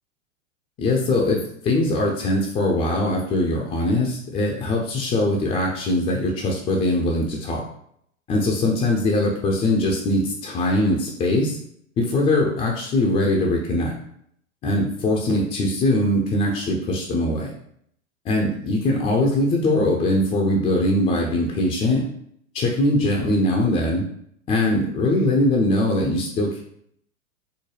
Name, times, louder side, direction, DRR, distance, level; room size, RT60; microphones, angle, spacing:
voice 1, 0.8-7.6 8.3-11.6 12.0-13.9 14.6-17.5 18.3-22.0 22.5-24.1 24.5-26.6, left 1 dB, 20° left, -1 dB, 0.5 m, -21 dB
4.7 x 2.1 x 3.1 m, 0.69 s
figure-of-eight pair, 95°, 40 cm